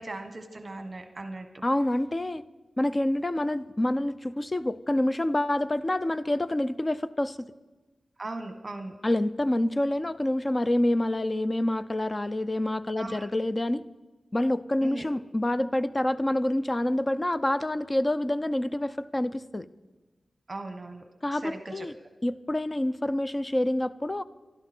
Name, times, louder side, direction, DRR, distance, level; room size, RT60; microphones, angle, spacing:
voice 1, 0.0-1.6 8.2-8.9 13.0-13.2 14.8-15.1 20.5-21.0 21.3-21.9, right 2 dB, 35° right, 7 dB, 1.4 m, -38 dB
voice 2, 1.6-2.4 2.8-7.4 9.0-13.9 14.3-19.7 21.2-21.9 22.2-24.2, left 1 dB, 25° left, 13 dB, 0.5 m, -27 dB
26.5 x 12.5 x 4.4 m, 1.2 s
wide cardioid pair, 125°, 0 cm